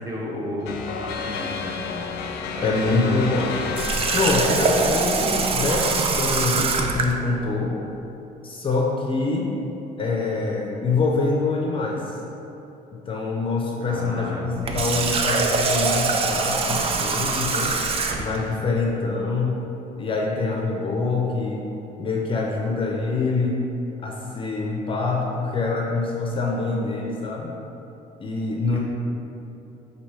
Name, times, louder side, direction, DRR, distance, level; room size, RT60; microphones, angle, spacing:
voice 1, 0.0-1.7 2.6-3.5 13.8-15.0, equal, 20° right, -3 dB, 0.8 m, -33 dB
sound 1, 0.7-6.1, left 5 dB, 80° left, 0.5 m, -31 dB
voice 2, 2.6-3.5 4.1-7.8 8.4-9.5 10.0-12.0 13.1-17.8 18.1-19.6 20.0-21.6 22.0-23.6 24.0-27.5 28.2-28.8, left 3 dB, 30° left, -1 dB, 0.5 m, -25 dB
Water tap faucet, 3.7-7.1 14.5-18.4, right 4 dB, 35° right, 0.4 m, -23 dB
4.2 x 2.6 x 4.7 m, 2.9 s
cardioid pair, 110°, 17 cm